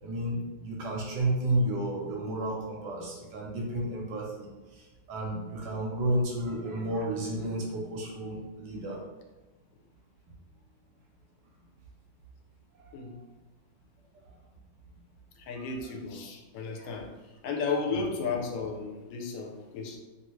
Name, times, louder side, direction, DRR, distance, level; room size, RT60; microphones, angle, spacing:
voice 1, 0.0-9.0 12.7-13.0 15.6-15.7 17.9-18.0, right 1 dB, 70° right, -1 dB, 1.2 m, -32 dB
voice 2, 15.4-17.1 17.4-20.0, left 4 dB, 85° left, 2 dB, 1.3 m, -33 dB
3.0 x 2.6 x 3.0 m, 1.2 s
omnidirectional pair, 2.1 m